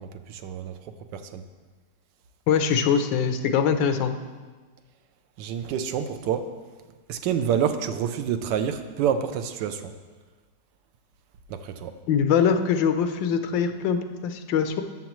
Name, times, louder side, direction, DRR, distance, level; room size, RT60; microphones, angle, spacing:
voice 1, 0.0-1.4 5.4-6.5 7.1-9.9 11.5-11.9, right 8 dB, 80° right, 9 dB, 1.2 m, -28 dB
voice 2, 2.5-4.1 12.1-14.8, left 7 dB, 90° left, 8 dB, 1.4 m, -23 dB
13.0 x 7.0 x 3.1 m, 1.4 s
omnidirectional pair, 2.0 m